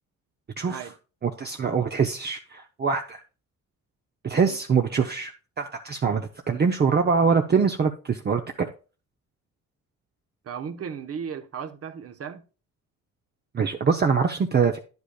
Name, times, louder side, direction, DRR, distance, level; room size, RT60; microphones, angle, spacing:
voice 1, 1.2-3.2 4.2-5.3 5.6-8.7 13.5-14.8, right 5 dB, 35° right, 0.8 m, -23 dB
voice 2, 10.4-12.4, right 7 dB, 50° right, 1.1 m, -35 dB
10.0 x 8.1 x 2.3 m
cardioid pair, 90°, 30 cm